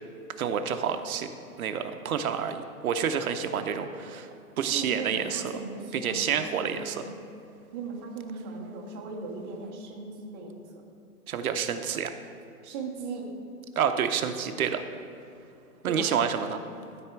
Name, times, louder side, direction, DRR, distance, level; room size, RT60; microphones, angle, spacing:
voice 1, 0.4-1.3 1.6-4.3 4.6-5.5 5.9-7.0 11.3-12.1 13.8-14.8 15.8-16.6, right 7 dB, 65° right, 8 dB, 0.7 m, -28 dB
voice 2, 4.6-7.2 7.7-10.5 12.6-13.3 15.8-16.1, right 4 dB, 15° right, -3 dB, 0.6 m, -38 dB
13.0 x 4.3 x 4.5 m, 2.7 s
hypercardioid pair, 160°, 46 cm